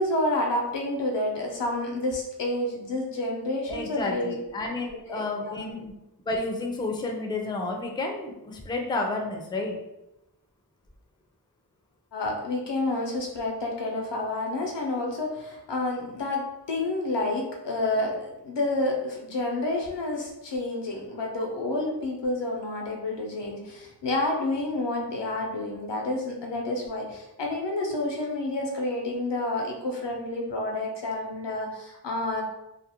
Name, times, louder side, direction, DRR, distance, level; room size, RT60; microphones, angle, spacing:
voice 1, 0.0-4.4 4.9-5.6 12.1-32.4, left 2 dB, 90° left, 0 dB, 0.6 m, -29 dB
voice 2, 3.7-5.9 6.3-9.8, left 2 dB, 10° left, 1 dB, 0.3 m, -31 dB
2.4 x 2.0 x 2.8 m, 0.90 s
wide cardioid pair, 55°, 41 cm